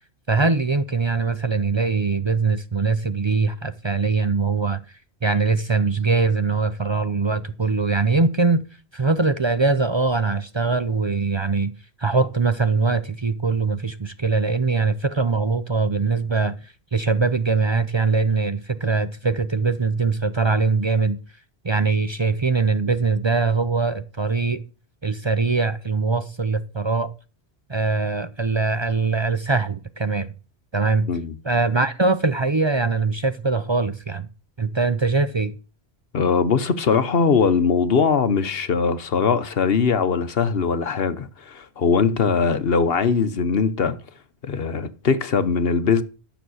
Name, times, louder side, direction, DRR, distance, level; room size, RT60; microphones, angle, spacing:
voice 1, 0.3-4.8 5.2-8.6 8.9-11.7 12.0-21.2 21.6-24.6 25.0-27.1 27.7-30.3 30.7-31.1 31.4-34.3 34.6-35.5, right 4 dB, 35° right, 0.5 m, -22 dB
voice 2, 36.1-44.0 44.4-46.0, left 5 dB, 60° left, 1.1 m, -21 dB
12.0 x 7.0 x 6.3 m
omnidirectional pair, 1.1 m